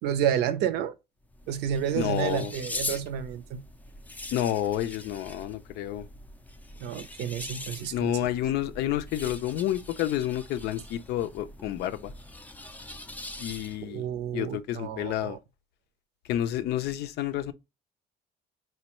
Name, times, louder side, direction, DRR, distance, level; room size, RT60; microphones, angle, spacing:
voice 1, 0.0-1.0 1.5-3.6 6.8-8.2 13.8-15.4, right 9 dB, 85° right, 0.6 m, -30 dB
sound 1, 1.2-14.0, left 2 dB, 10° left, 0.4 m, -42 dB
voice 2, 1.9-2.5 4.3-6.1 7.9-12.1 13.4-14.0 14.3-15.4 16.3-17.5, left 12 dB, 75° left, 0.5 m, -29 dB
4.3 x 2.2 x 2.9 m
cardioid pair, 110°, 17 cm